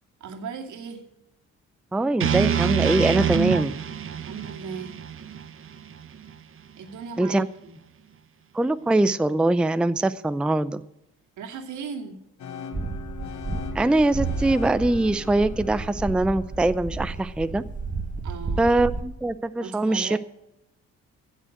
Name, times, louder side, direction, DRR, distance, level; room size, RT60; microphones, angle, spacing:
voice 1, 0.2-1.0 4.1-5.0 6.8-7.7 11.4-12.2 18.2-18.6 19.6-20.2, right 6 dB, 75° right, 5 dB, 2.3 m, -37 dB
voice 2, 1.9-3.8 7.2-7.5 8.5-10.8 13.7-17.6 18.6-20.2, right 2 dB, 5° right, 13 dB, 0.5 m, -22 dB
sound 1, 2.2-6.3, right 9 dB, 45° right, 1.1 m, -26 dB
sound 2, 12.4-18.3, left 7 dB, 65° left, 1.4 m, -41 dB
sound 3, 12.7-19.0, right 3 dB, 25° right, 1.4 m, -32 dB
15.5 x 6.5 x 7.7 m, 0.91 s
cardioid pair, 90°, 30 cm